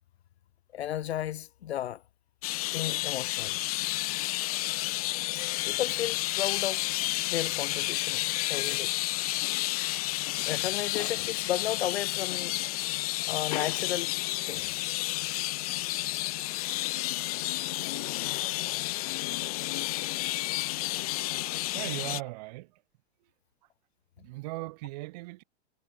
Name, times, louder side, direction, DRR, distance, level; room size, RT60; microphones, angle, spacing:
voice 1, 0.7-2.0 2.7-3.6 5.7-6.9 7.2-8.9 10.5-12.5 13.3-14.1 14.5-14.8, left 12 dB, 65° left, 1.8 m, -34 dB
sound 1, 2.4-22.2, left 18 dB, 35° left, 0.9 m, -31 dB
voice 2, 21.7-22.8 24.2-25.4, right 22 dB, 35° right, 5.4 m, -38 dB
supercardioid pair, 175°, 34 cm